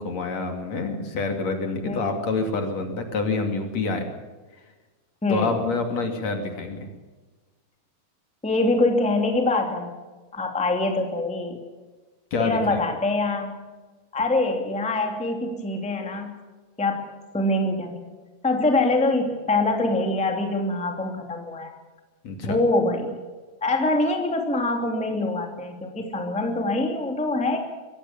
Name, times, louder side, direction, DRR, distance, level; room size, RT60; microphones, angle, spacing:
voice 1, 0.0-4.0 5.3-6.9 12.3-12.6 22.2-22.6, left 3 dB, 55° left, 5 dB, 3.6 m, -27 dB
voice 2, 1.9-2.2 5.2-5.6 8.4-9.9 10.3-11.6 12.4-13.6 14.1-16.4 16.8-18.0 18.4-21.7 22.4-23.2 23.6-27.6, left 2 dB, ahead, 3 dB, 2.2 m, -24 dB
23.5 x 17.0 x 7.2 m, 1.3 s
omnidirectional pair, 3.8 m